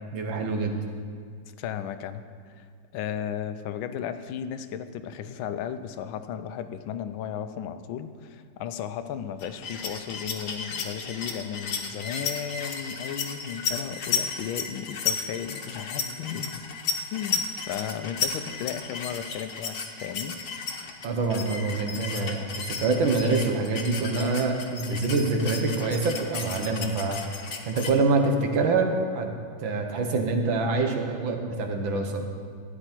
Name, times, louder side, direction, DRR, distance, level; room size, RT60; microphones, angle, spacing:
voice 1, 0.1-0.7 21.0-27.2 27.7-29.3 29.6-32.2, right 3 dB, 75° right, 4 dB, 1.9 m, -25 dB
voice 2, 1.6-2.2 2.5-2.7 2.9-16.6 17.1-20.4, left 9 dB, 85° left, 11 dB, 1.4 m, -35 dB
sound 1, 9.4-27.9, left 5 dB, 60° left, 1.5 m, -34 dB
13.0 x 9.9 x 4.4 m, 2.1 s
omnidirectional pair, 2.1 m